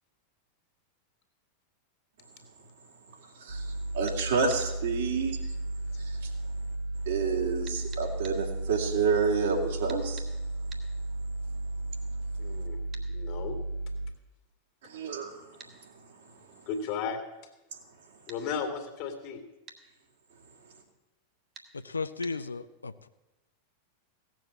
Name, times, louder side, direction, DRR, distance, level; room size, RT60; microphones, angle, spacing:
voice 1, 3.3-5.4 5.9-6.3 7.0-10.3 14.8-16.7, right 5 dB, 60° right, 0 dB, 2.9 m, -30 dB
sound 1, 3.5-14.1, right 2 dB, 75° right, 2.8 m, -34 dB
sound 2, 4.1-4.7 7.7-8.4 9.9-10.3 10.7-10.9 12.9-13.1 15.6-15.8 18.3-18.4 19.7-19.8 21.5-21.7 22.2-22.4, right 5 dB, 30° right, 1.9 m, -48 dB
voice 2, 12.4-12.8 13.1-13.6 16.7-17.2 18.3-19.4, left 6 dB, 45° left, 5 dB, 2.3 m, -34 dB
voice 3, 21.8-23.1, left 4 dB, 75° left, 11 dB, 0.5 m, -35 dB
16.5 x 7.7 x 8.5 m, 1.0 s
figure-of-eight pair, 90°, 0 cm